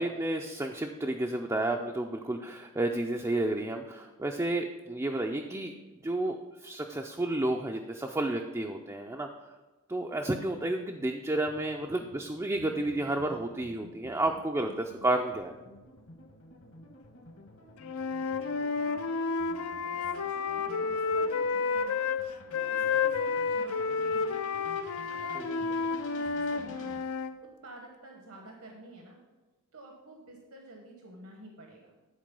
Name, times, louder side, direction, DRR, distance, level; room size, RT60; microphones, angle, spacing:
voice 1, 0.0-5.7 6.0-6.4 6.6-9.3 9.9-15.5 25.4-25.5, right 2 dB, 15° right, 2 dB, 0.4 m, -31 dB
sound 1, 11.3-27.0, left 1 dB, 55° left, 1.2 m, -52 dB
voice 2, 17.6-24.7 25.1-27.1 27.4-29.2 29.7-31.9, right 2 dB, 75° right, 1 dB, 1.1 m, -50 dB
Wind instrument woodwind instrument, 17.8-22.2 22.5-27.3, left 5 dB, 75° left, 0.5 m, -30 dB
10.5 x 4.4 x 5.3 m, 1.2 s
head